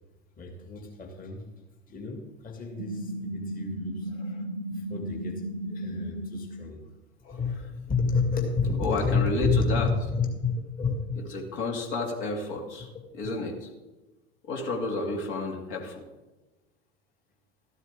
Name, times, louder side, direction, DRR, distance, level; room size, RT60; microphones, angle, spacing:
voice 1, 0.4-1.4 1.9-4.1 4.7-6.8 7.3-11.4, left 4 dB, 25° left, 3 dB, 2.2 m, -30 dB
sound 1, 2.8-6.7, right 1 dB, 75° right, 1.0 m, -35 dB
voice 2, 8.8-9.9 11.3-12.9 13.2-13.7 14.5-16.0, left 2 dB, 55° left, 1 dB, 2.4 m, -31 dB
13.5 x 12.0 x 3.6 m, 1.1 s
figure-of-eight pair, 80°, 31 cm